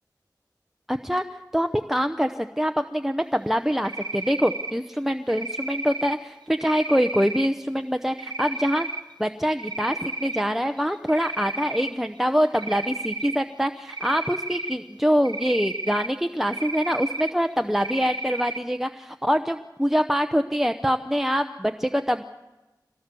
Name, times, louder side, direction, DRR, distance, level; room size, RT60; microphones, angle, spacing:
voice 1, 0.9-1.2 1.5-8.9 9.2-22.2, equal, 5° right, 6 dB, 0.8 m, -24 dB
Cricket, 3.8-4.7 5.3-6.2 6.6-7.5 8.2-9.0 9.4-10.4 10.8-11.9 12.5-13.4 13.9-14.8 15.3-16.1 16.5-17.3 17.8-18.6, right 2 dB, 75° right, 1.2 m, -32 dB
23.5 x 17.5 x 6.9 m, 1.1 s
wide cardioid pair, 55°, 7 cm